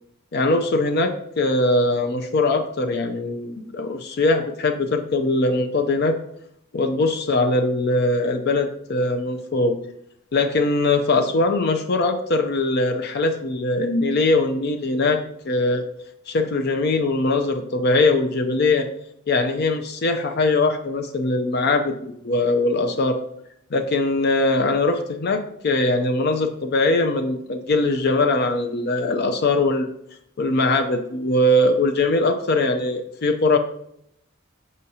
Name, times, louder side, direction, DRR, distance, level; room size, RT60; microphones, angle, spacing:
voice 1, 0.3-6.2 6.7-9.8 10.3-15.9 16.3-18.9 19.3-23.2 23.7-29.9 30.4-33.6, left 2 dB, 50° left, 5 dB, 0.5 m, -21 dB
6.2 x 5.4 x 2.8 m, 0.74 s
head